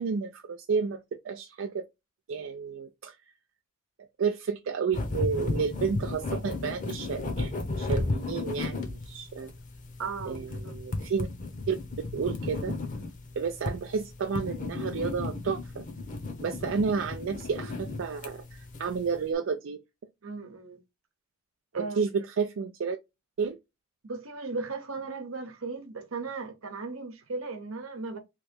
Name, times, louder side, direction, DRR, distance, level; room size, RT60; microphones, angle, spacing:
voice 1, 0.0-1.9 2.3-3.2 4.2-9.5 10.3-11.3 11.7-11.8 12.1-12.8 13.4-15.8 16.4-19.8 21.8-23.0 23.4-23.6, right 5 dB, 65° right, 0.4 m, -31 dB
sound 1, 4.9-19.2, left 2 dB, 40° left, 0.8 m, -34 dB
voice 2, 10.0-10.7 20.2-20.8 21.7-22.0 24.0-28.2, right 4 dB, 90° right, 0.9 m, -37 dB
3.1 x 2.8 x 3.5 m
head